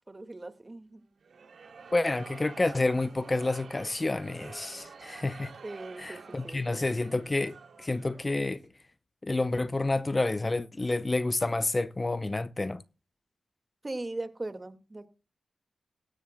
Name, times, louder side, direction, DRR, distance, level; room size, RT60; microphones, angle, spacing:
voice 1, 0.1-1.0 5.6-6.9 13.8-15.1, right 2 dB, 35° right, 1.9 m, -39 dB
sound 1, 1.2-8.4, right 5 dB, 85° right, 2.7 m, -49 dB
voice 2, 1.9-5.5 6.0-8.6 9.2-12.8, left 2 dB, 35° left, 0.6 m, -29 dB
17.0 x 15.5 x 2.2 m
cardioid pair, 55°, 0 cm